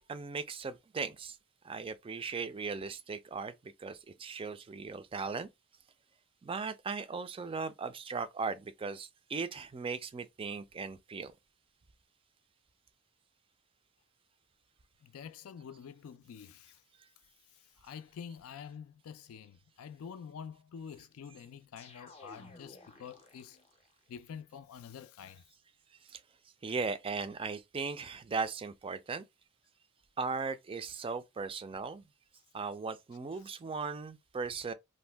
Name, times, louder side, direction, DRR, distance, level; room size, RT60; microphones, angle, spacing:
voice 1, 0.0-1.4 1.6-5.5 6.4-11.3 26.1-26.2 26.6-29.3 30.2-32.1 32.5-34.7, right 4 dB, 25° right, 0.3 m, -38 dB
voice 2, 15.0-16.8 17.5-23.6 24.1-25.5, left 7 dB, 80° left, 0.4 m, -47 dB
sound 1, 21.8-24.0, left 2 dB, 30° left, 0.5 m, -55 dB
2.6 x 2.2 x 3.3 m
head